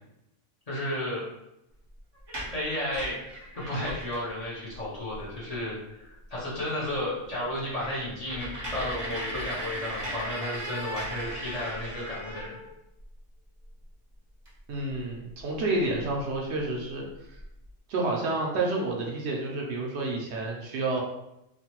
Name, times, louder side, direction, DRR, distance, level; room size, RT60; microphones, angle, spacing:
voice 1, 0.7-1.2 2.5-3.2 3.6-12.6, left 1 dB, 35° left, -8 dB, 0.8 m, -33 dB
sound 1, 2.2-4.3 4.7-4.8 5.1-5.5 6.0-6.1 6.5-6.6 6.9-7.0 7.4-13.0 14.5-14.6 14.9-16.2 16.8-16.9 17.1-17.7, right 1 dB, 30° right, 0.5 m, -37 dB
voice 2, 14.7-17.4 17.9-21.0, right 2 dB, 70° right, -1 dB, 0.8 m, -29 dB
3.0 x 2.1 x 2.9 m, 0.87 s
omnidirectional pair, 1.3 m